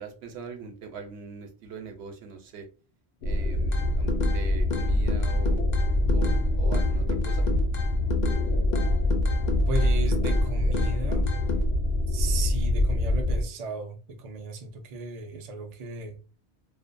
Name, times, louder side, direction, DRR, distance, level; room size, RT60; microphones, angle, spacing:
voice 1, 0.0-2.7 3.2-5.8 6.1-7.5, right 5 dB, 75° right, 0.9 m, -42 dB
sound 1, 3.2-13.4, left 1 dB, 90° left, 0.9 m, -24 dB
sound 2, 3.7-4.4 4.7-6.4 6.7-8.4 8.7-10.4 10.7-11.6, left 5 dB, 55° left, 0.5 m, -33 dB
voice 2, 9.7-11.3 12.1-16.2, right 2 dB, 55° right, 0.4 m, -35 dB
2.6 x 2.1 x 2.5 m
omnidirectional pair, 1.1 m